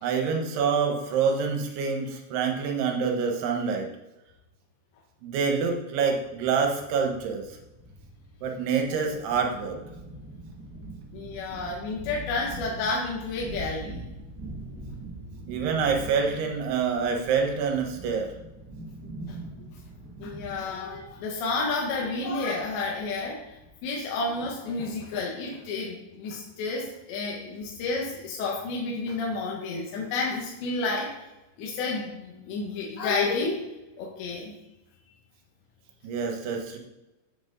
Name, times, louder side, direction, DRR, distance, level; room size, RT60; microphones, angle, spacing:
voice 1, 0.0-3.9 5.2-7.6 8.4-9.8 15.5-18.3 36.0-36.8, right 5 dB, 75° right, 3 dB, 3.0 m, -26 dB
sound 1, 6.1-23.8, right 2 dB, 40° right, 1.4 m, -43 dB
voice 2, 11.1-14.1 19.3-19.4 20.2-23.5 23.8-31.1 31.6-33.6 34.0-34.5, left 3 dB, 85° left, -3 dB, 3.5 m, -30 dB
8.6 x 6.1 x 5.3 m, 0.97 s
omnidirectional pair, 5.0 m